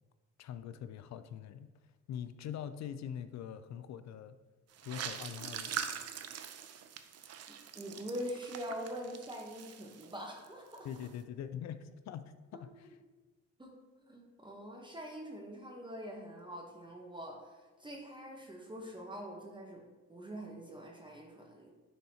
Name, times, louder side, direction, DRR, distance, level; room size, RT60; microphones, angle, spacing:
voice 1, 0.4-1.7 2.1-4.4 4.8-5.9 10.8-12.9, left 9 dB, 65° left, 11 dB, 0.4 m, -43 dB
sound 1, 4.7-10.5 10.7-11.1, right 8 dB, 55° right, 0.6 m, -43 dB
voice 2, 7.7-10.9 13.6-13.7 14.0-19.8 20.1-21.7, equal, 15° right, -1 dB, 1.0 m, -44 dB
10.0 x 4.1 x 2.8 m, 1.3 s
cardioid pair, 90°, 30 cm